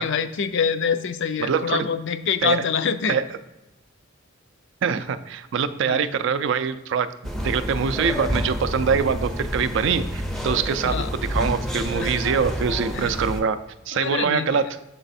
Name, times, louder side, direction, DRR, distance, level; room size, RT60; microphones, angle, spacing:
voice 1, 0.0-3.2 5.8-6.1 10.8-11.1 12.0-12.2 12.9-13.2 13.9-14.6, left 6 dB, 60° left, 11 dB, 0.4 m, -25 dB
voice 2, 1.4-1.9 2.4-2.6 3.1-3.2 4.8-7.1 7.4-13.6 13.9-14.6, right 6 dB, 65° right, 12 dB, 0.4 m, -24 dB
sound 1, 7.2-13.4, equal, ahead, 0.5 m, -29 dB
6.9 x 3.3 x 4.1 m, 0.97 s
head